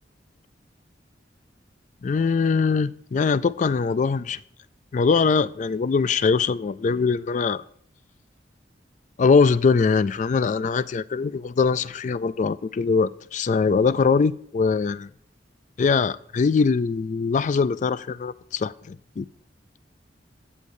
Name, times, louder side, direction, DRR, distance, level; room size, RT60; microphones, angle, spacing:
voice 1, 2.0-4.4 4.9-7.6 9.2-15.1 15.8-19.3, left 5 dB, 40° left, 16 dB, 0.3 m, -22 dB
15.5 x 6.6 x 2.7 m, 0.62 s
head